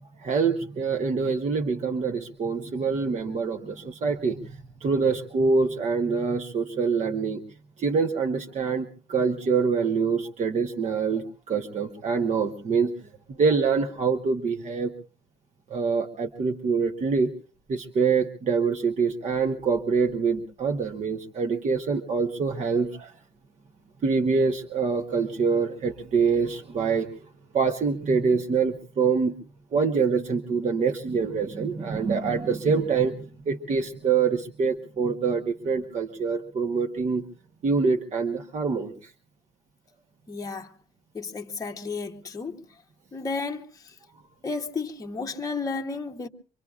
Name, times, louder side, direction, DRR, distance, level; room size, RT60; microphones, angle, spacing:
voice 1, 0.2-4.5 4.8-7.4 7.8-12.9 13.3-14.9 15.7-17.3 17.7-23.1 24.0-27.1 27.5-29.3 29.7-33.2 33.5-37.2 37.6-39.1, right 5 dB, 40° right, 0.9 m, -25 dB
voice 2, 40.3-40.7 41.1-42.6 43.1-43.9 44.4-46.3, left 4 dB, 20° left, 0.9 m, -33 dB
24.5 x 24.5 x 2.4 m
wide cardioid pair, 175°, 18 cm